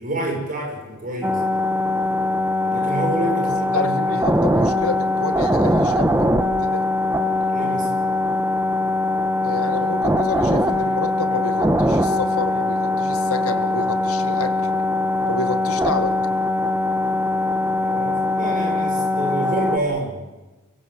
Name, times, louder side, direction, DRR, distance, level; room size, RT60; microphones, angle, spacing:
voice 1, 0.0-1.4 2.6-4.3 7.5-7.9 17.8-20.2, right 2 dB, 40° right, 1 dB, 6.9 m, -28 dB
sound 1, 1.2-19.8, left 1 dB, 10° right, 1.3 m, -21 dB
voice 2, 3.7-6.9 9.4-14.7 15.3-16.2, left 4 dB, 80° left, 9 dB, 2.0 m, -29 dB
28.5 x 17.0 x 8.4 m, 1.2 s
head